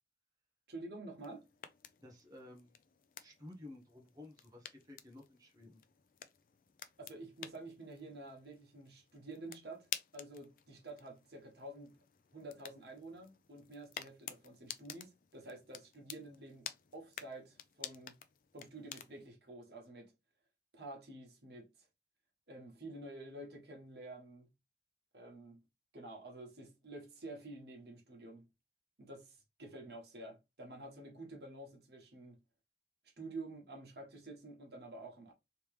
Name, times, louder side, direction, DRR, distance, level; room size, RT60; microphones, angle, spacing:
voice 1, 0.7-1.5 7.0-12.0 12.3-18.2 18.5-20.1 20.7-21.9 22.5-24.5 25.1-25.6 25.9-28.5 29.0-32.4 33.0-35.3, right 2 dB, 70° right, 1.3 m, -50 dB
sound 1, 1.2-19.3, left 10 dB, 50° left, 0.4 m, -51 dB
voice 2, 2.0-2.8 3.2-5.8, left 2 dB, 20° right, 0.8 m, -54 dB
3.3 x 2.9 x 3.3 m
head